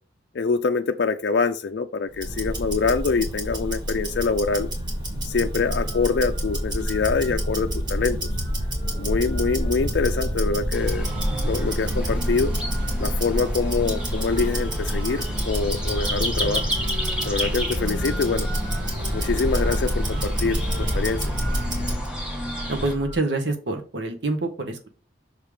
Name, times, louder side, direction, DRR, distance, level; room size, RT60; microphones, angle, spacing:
voice 1, 0.3-4.7 5.2-8.2 9.0-11.1 11.4-12.5 13.0-16.6 17.2-18.5 19.1-21.3, left 4 dB, 65° left, 5 dB, 0.4 m, -25 dB
Tick-tock, 2.1-22.1, equal, 25° right, 2.2 m, -27 dB
sound 1, 4.4-23.2, equal, 40° right, 2.7 m, -38 dB
sound 2, 10.7-22.9, equal, 5° right, 1.2 m, -33 dB
voice 2, 22.7-24.9, right 2 dB, 70° right, 5 dB, 1.0 m, -26 dB
6.5 x 3.5 x 4.9 m, 0.36 s
head